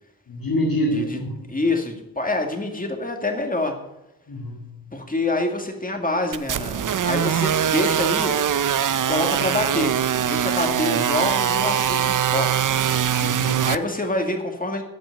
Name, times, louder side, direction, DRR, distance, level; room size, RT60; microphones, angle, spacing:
voice 1, 0.3-1.4 4.3-4.8 10.6-10.9 13.2-13.7, equal, 70° left, 0 dB, 2.2 m, -27 dB
voice 2, 1.5-3.8 4.9-8.3 9.1-10.0 10.2-12.5 13.6-14.8, left 2 dB, 25° left, 3 dB, 2.2 m, -26 dB
sound 1, 6.3-13.8, right 9 dB, 60° right, 0.6 m, -22 dB
13.5 x 6.2 x 9.6 m, 0.91 s
wide cardioid pair, 95°, 35 cm